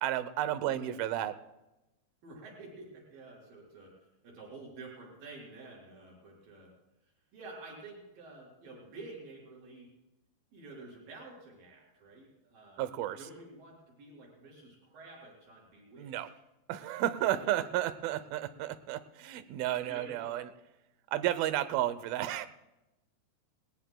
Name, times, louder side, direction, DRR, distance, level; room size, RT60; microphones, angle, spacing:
voice 1, 0.0-1.4 12.8-13.2 16.0-16.3 16.7-20.5 21.1-22.5, right 13 dB, 75° right, 13 dB, 2.3 m, -32 dB
voice 2, 2.2-3.9 4.2-6.7 7.3-9.9 10.5-12.9 13.2-16.3 17.1-17.3 19.9-20.4, right 3 dB, 55° right, -3 dB, 7.0 m, -50 dB
20.5 x 20.0 x 2.3 m, 0.96 s
omnidirectional pair, 4.8 m